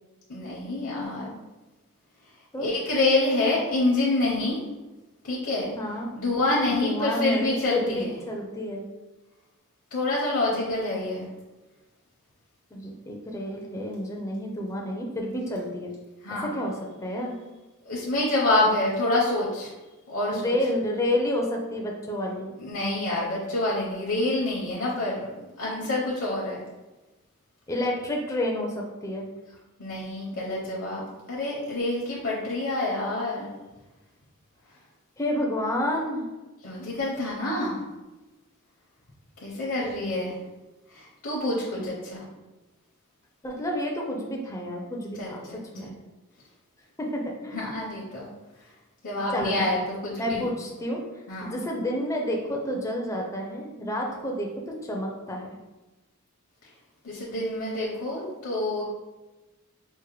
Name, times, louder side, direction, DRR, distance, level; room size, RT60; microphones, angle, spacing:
voice 1, 0.3-1.3 2.6-4.6 5.3-5.7 6.1-8.1 9.9-11.3 16.2-16.5 17.9-19.7 20.1-20.5 22.6-25.3 25.6-26.6 29.8-31.0 31.3-33.5 36.6-37.8 39.4-40.3 40.9-42.2 45.2-45.6 45.8-45.9 47.5-48.2 49.0-50.4 51.3-51.5 57.0-58.8, left 2 dB, 65° left, -5 dB, 0.7 m, -27 dB
voice 2, 5.8-6.1 6.6-8.8 12.7-15.9 16.3-17.4 20.3-22.5 27.7-29.3 35.2-36.3 41.5-41.9 43.4-45.9 47.0-47.8 49.3-49.6 50.2-51.0 51.4-55.5, left 1 dB, 15° left, 0 dB, 0.4 m, -30 dB
4.6 x 2.1 x 3.0 m, 1.1 s
head